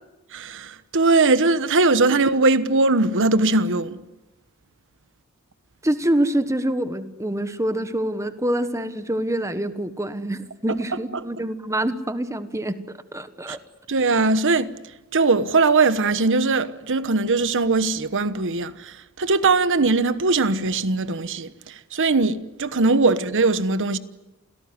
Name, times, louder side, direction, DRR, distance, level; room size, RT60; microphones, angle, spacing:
voice 1, 0.3-4.0 13.5-13.6 13.9-14.7 15.1-24.0, right 3 dB, 60° right, 1.1 m, -20 dB
voice 2, 5.8-13.6, right 1 dB, 15° right, 1.4 m, -26 dB
28.0 x 17.0 x 9.7 m
head